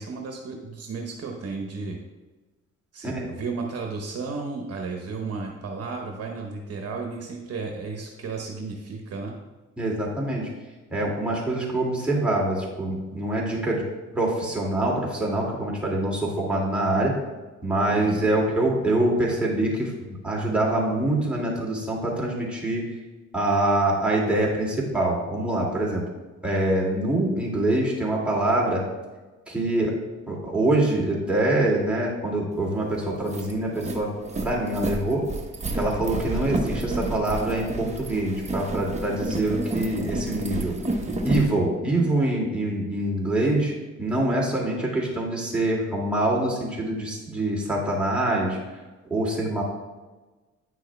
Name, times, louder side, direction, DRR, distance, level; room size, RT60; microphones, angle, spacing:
voice 1, 0.0-2.0 2.9-9.3 17.9-18.3, right 4 dB, 55° right, 1 dB, 1.0 m, -33 dB
voice 2, 9.8-10.5 10.9-13.9 14.1-17.1 17.6-22.8 23.3-26.0 26.4-28.8 29.5-29.9 30.3-34.1 34.4-35.3 35.7-40.7 41.2-43.7 44.0-48.6 49.1-49.6, right 1 dB, 5° right, -4 dB, 2.2 m, -25 dB
sound 1, 32.7-32.8 33.1-41.5, right 2 dB, 25° right, 0.9 m, -30 dB
9.5 x 6.2 x 2.3 m, 1.2 s
cardioid pair, 90°, 30 cm